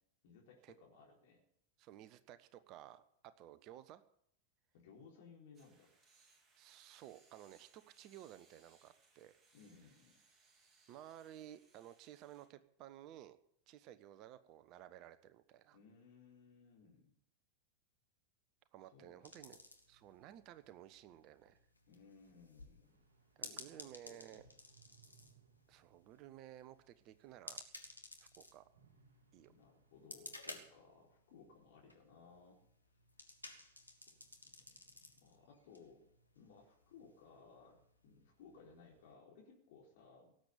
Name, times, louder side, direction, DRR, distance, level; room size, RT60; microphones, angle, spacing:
voice 1, 0.2-1.4 4.7-5.9 9.5-10.2 15.7-17.1 18.9-19.6 21.9-23.0 23.4-24.5 29.5-32.6 34.7-34.8 35.0-36.0 36.3-40.3, left 5 dB, 55° left, -1 dB, 4.3 m, -61 dB
voice 2, 1.8-3.0 3.4-4.0 6.6-9.3 10.9-13.4 13.7-15.8 18.7-19.6 19.9-21.6 23.4-24.4 25.7-27.6 28.4-28.6 29.3-29.5, right 12 dB, 40° right, 13 dB, 1.0 m, -55 dB
sound 1, 5.5-12.5, right 3 dB, 20° right, 4.1 m, -71 dB
sound 2, 19.2-39.1, left 2 dB, 85° left, 2.1 m, -57 dB
sound 3, 22.8-27.2 27.5-27.7 28.7-30.4, right 7 dB, 60° right, 2.8 m, -71 dB
18.0 x 8.1 x 8.7 m, 0.70 s
figure-of-eight pair, 90°, 0 cm